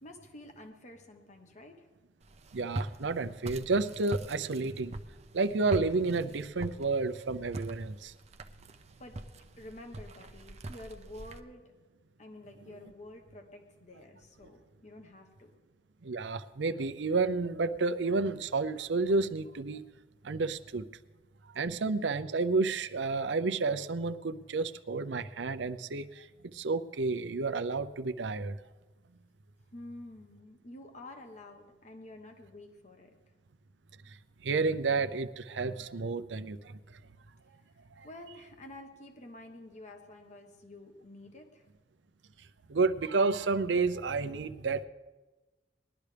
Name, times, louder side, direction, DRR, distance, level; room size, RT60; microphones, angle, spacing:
voice 1, 0.0-1.9 8.8-9.2 9.6-11.6 12.2-15.5 29.7-33.1 37.7-37.8 38.0-41.7, left 1 dB, 40° left, 4 dB, 1.2 m, -49 dB
Walk footsteps, 2.2-11.4, right 1 dB, 35° right, 0.6 m, -42 dB
voice 2, 2.5-5.0 5.3-8.1 16.0-19.8 20.2-20.9 21.6-28.5 34.4-36.8 38.0-38.1 42.7-44.8, right 3 dB, 80° right, 12 dB, 0.6 m, -30 dB
20.0 x 12.0 x 3.4 m, 1.2 s
head